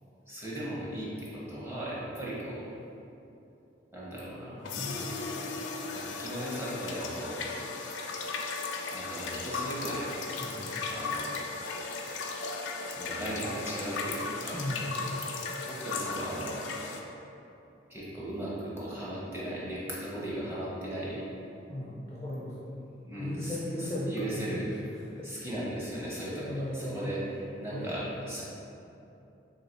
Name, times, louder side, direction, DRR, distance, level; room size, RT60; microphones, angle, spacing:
voice 1, 0.3-2.7 3.9-4.6 5.9-7.5 8.9-10.1 10.9-11.4 12.9-14.6 15.6-16.6 17.9-21.2 23.0-24.7 25.2-28.4, right 1 dB, 15° right, -7 dB, 0.8 m, -37 dB
voice 2, 4.5-5.8 10.4-10.8 14.5-15.1 21.7-22.5 23.2-24.6 25.1-25.3 26.3-27.3 27.7-28.1, left 1 dB, 15° left, -7 dB, 0.4 m, -37 dB
sound 1, 4.6-17.0, left 4 dB, 85° left, 0.4 m, -36 dB
3.1 x 3.1 x 4.1 m, 2.8 s
head